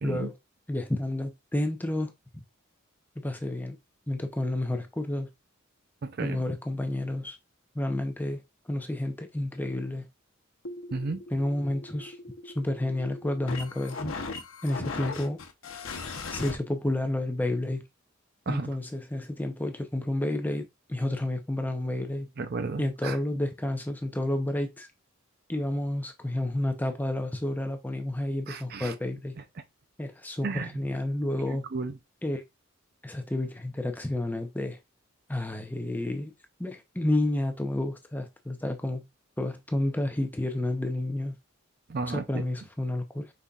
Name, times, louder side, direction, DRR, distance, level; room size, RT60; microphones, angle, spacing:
voice 1, 0.0-0.3 0.7-2.4 3.2-3.8 4.1-5.3 6.2-7.4 7.7-8.4 8.7-10.0 11.3-12.2 12.4-14.1 14.6-15.4 16.3-17.8 18.5-22.3 22.8-24.9 25.5-29.4 30.0-31.6 32.2-32.4 33.0-34.8 35.3-36.3 36.6-39.0 39.4-41.4 42.1-43.3, left 1 dB, 10° left, 0.6 m, -30 dB
voice 2, 6.0-6.4 10.9-11.2 18.5-18.7 22.4-23.2 28.5-28.9 30.4-30.8 31.5-32.0 41.9-42.4, right 3 dB, 50° right, 0.5 m, -33 dB
sound 1, 10.6-16.6, left 3 dB, 80° left, 0.9 m, -39 dB
5.3 x 4.1 x 2.4 m
head